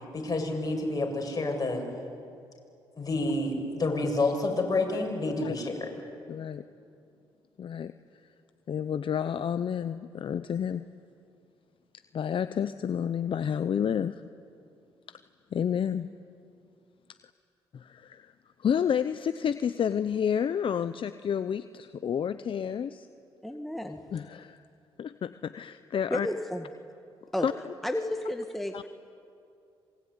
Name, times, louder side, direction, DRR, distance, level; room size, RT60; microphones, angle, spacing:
voice 1, 0.1-1.8 3.0-5.9, left 2 dB, 35° left, 1 dB, 7.1 m, -29 dB
voice 2, 6.3-6.6 7.6-7.9 8.7-10.9 12.1-14.2 15.5-16.1 17.9-18.3 18.6-23.1 24.1-24.6 25.0-26.3 27.4-27.5 28.7-28.8, left 8 dB, 55° left, 12 dB, 0.8 m, -30 dB
voice 3, 23.4-24.0 26.1-26.7 27.3-27.5 27.8-28.9, left 1 dB, ahead, 4 dB, 1.8 m, -32 dB
26.5 x 22.5 x 9.8 m, 2.5 s
cardioid pair, 65°, 10 cm